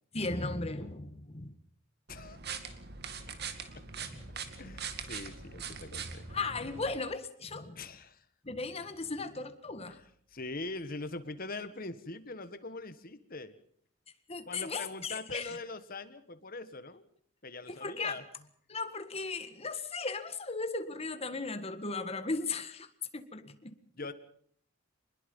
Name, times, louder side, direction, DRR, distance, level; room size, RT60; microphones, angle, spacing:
voice 1, 0.1-1.5 4.0-4.2 6.3-7.8 8.4-10.0 14.3-15.6 17.7-18.2 18.7-23.8, left 3 dB, 30° left, 10 dB, 1.8 m, -37 dB
voice 2, 2.1-2.4 3.7-3.8 4.6-6.2 7.7-8.2 9.9-10.0 10.3-13.5 14.5-17.1 17.4-18.2 23.9-24.1, left 3 dB, 45° left, 12 dB, 1.6 m, -42 dB
sound 1, 2.1-7.0, right 6 dB, 55° right, 2.2 m, -42 dB
25.5 x 21.0 x 5.5 m, 0.62 s
head